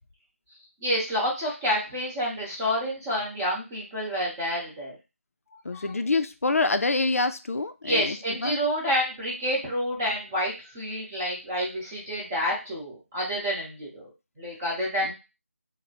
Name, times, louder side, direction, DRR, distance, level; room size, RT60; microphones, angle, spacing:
voice 1, 0.8-5.0 5.7-5.9 7.8-14.1 14.4-15.1, equal, 15° right, -5 dB, 0.8 m, -29 dB
voice 2, 5.6-8.6 15.0-15.1, left 3 dB, 85° left, 10 dB, 0.4 m, -26 dB
2.9 x 2.0 x 2.8 m, 0.27 s
figure-of-eight pair, 170°, 8 cm